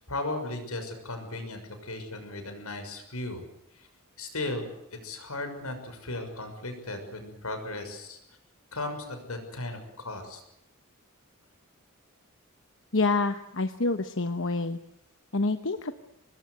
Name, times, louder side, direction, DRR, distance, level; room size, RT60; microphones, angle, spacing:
voice 1, 0.1-3.5 3.7-3.9 4.2-4.7 5.0-8.2 8.7-9.8 10.0-10.4, left 2 dB, 85° left, 7 dB, 6.4 m, -36 dB
voice 2, 12.9-14.8 15.3-15.9, left 3 dB, 60° left, 9 dB, 1.1 m, -27 dB
25.0 x 20.5 x 8.3 m, 0.83 s
head